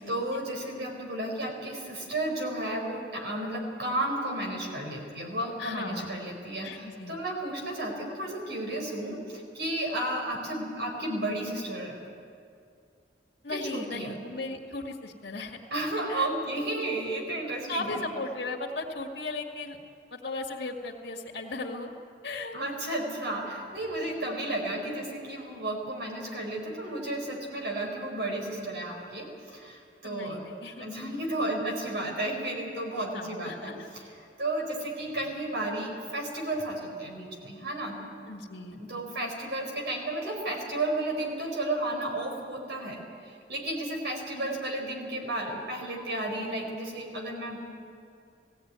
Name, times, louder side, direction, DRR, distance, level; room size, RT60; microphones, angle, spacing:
voice 1, 0.0-12.0 13.5-14.2 15.7-18.0 22.5-34.1 34.4-37.9 38.7-47.6, right 1 dB, 70° right, 1 dB, 4.7 m, -33 dB
voice 2, 5.6-6.1 6.6-7.2 13.4-15.6 16.1-16.3 17.7-19.8 20.1-21.9 22.2-22.6 30.0-30.9 33.1-33.9 38.3-39.0 44.3-44.6, left 2 dB, 65° left, -3 dB, 1.9 m, -37 dB
18.5 x 16.0 x 9.5 m, 2.4 s
head